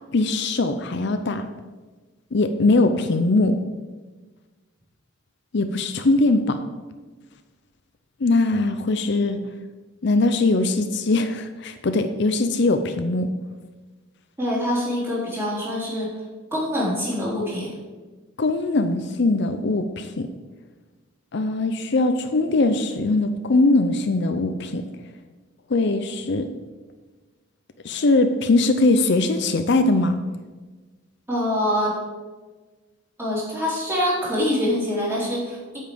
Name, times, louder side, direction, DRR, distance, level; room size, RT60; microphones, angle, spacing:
voice 1, 0.1-1.4 2.3-3.6 5.5-6.6 8.2-9.4 10.0-13.3 18.4-20.3 21.3-24.8 25.7-26.5 27.8-30.2, left 2 dB, 60° left, 8 dB, 0.6 m, -21 dB
voice 2, 14.4-16.1 16.5-17.7 31.3-31.9 33.2-35.8, left 1 dB, 10° right, -6 dB, 3.4 m, -25 dB
8.6 x 5.5 x 7.5 m, 1.3 s
head